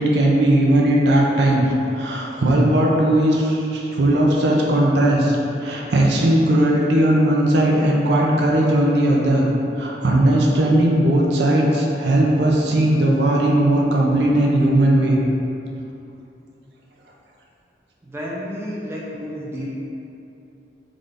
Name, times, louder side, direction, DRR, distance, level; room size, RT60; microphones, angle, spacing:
voice 1, 0.0-1.7 2.0-9.5 9.8-15.2, right 1 dB, 65° right, -3 dB, 0.5 m, -18 dB
voice 2, 18.0-19.7, equal, 15° right, -6 dB, 0.4 m, -31 dB
3.8 x 2.5 x 3.3 m, 2.7 s
head